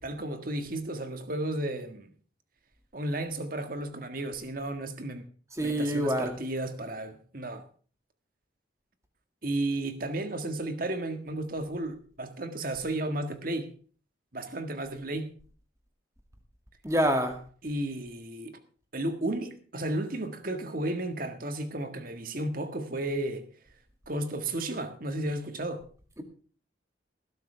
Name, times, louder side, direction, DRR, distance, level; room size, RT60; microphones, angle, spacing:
voice 1, 0.0-2.1 2.9-5.2 5.6-7.6 9.4-13.7 14.3-15.3 17.6-18.6 18.9-23.5 24.1-25.8, right 1 dB, 45° right, 1.7 m, -33 dB
voice 2, 5.6-6.3 16.8-17.4, equal, 15° right, 2.1 m, -26 dB
19.5 x 11.5 x 3.4 m
head